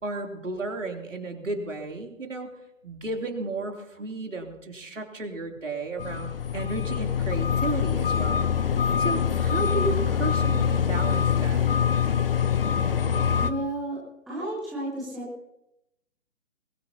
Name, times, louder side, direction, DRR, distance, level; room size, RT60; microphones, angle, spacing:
voice 1, 0.0-2.5 2.8-8.4 9.0-11.7, right 2 dB, 70° right, 2 dB, 3.2 m, -33 dB
sound 1, 6.0-13.5, left 7 dB, 45° left, 0.9 m, -24 dB
voice 2, 13.4-14.0 14.3-15.2, right 1 dB, ahead, -8 dB, 0.6 m, -32 dB
22.0 x 19.0 x 2.9 m, 0.86 s
figure-of-eight pair, 140°, 39 cm